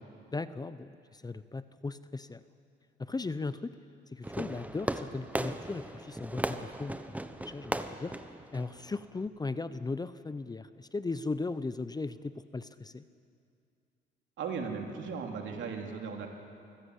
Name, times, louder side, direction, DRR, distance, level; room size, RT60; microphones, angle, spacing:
voice 1, 0.3-2.4 3.0-3.7 4.1-8.1 8.5-13.0, left 3 dB, 20° left, 14 dB, 0.7 m, -37 dB
Fireworks, 4.2-9.3, right 1 dB, 5° right, 1.0 m, -37 dB
voice 2, 14.4-16.3, right 5 dB, 70° right, 2 dB, 3.0 m, -37 dB
24.5 x 15.5 x 8.3 m, 2.5 s
cardioid pair, 90°, 20 cm